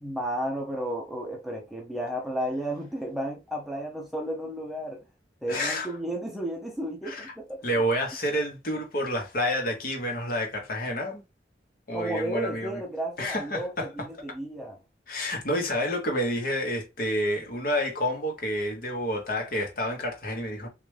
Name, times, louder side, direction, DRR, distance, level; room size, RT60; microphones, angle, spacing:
voice 1, 0.0-5.0 5.4-7.6 11.9-14.8, right 1 dB, ahead, 0.6 m, -33 dB
voice 2, 5.5-6.0 7.0-7.3 7.6-11.2 11.9-12.8 13.2-14.1 15.1-20.7, equal, 50° left, 0.9 m, -29 dB
3.1 x 2.4 x 3.1 m
head